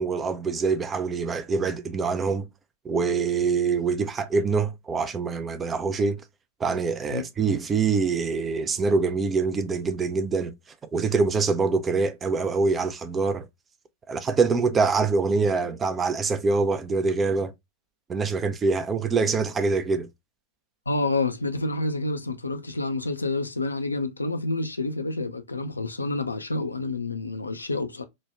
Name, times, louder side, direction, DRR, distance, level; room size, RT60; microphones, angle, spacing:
voice 1, 0.0-2.5 2.9-6.2 6.6-10.5 10.9-13.5 14.1-17.5 18.1-20.1, right 4 dB, 20° right, 0.4 m, -24 dB
voice 2, 20.9-28.0, left 2 dB, 80° left, 0.4 m, -28 dB
3.0 x 2.2 x 3.2 m
figure-of-eight pair, 90°, 0 cm